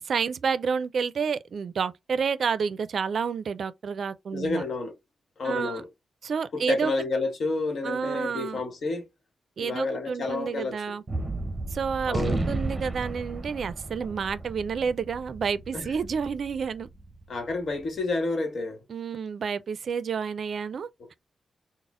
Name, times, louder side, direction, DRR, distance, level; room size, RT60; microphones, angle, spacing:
voice 1, 0.1-4.6 5.4-5.8 6.2-6.9 7.8-8.6 9.6-11.0 11.7-16.9 18.9-20.9, right 6 dB, 65° right, 0.4 m, -29 dB
voice 2, 4.3-5.0 5.4-5.9 6.5-9.0 9.6-10.9 12.1-12.4 15.7-15.9 17.3-18.8 21.0-21.2, left 3 dB, 60° left, 1.1 m, -30 dB
Gunshot gunfire, 11.1-17.6, right 2 dB, 20° right, 0.8 m, -34 dB
4.1 x 2.0 x 3.6 m
wide cardioid pair, 110°, 0 cm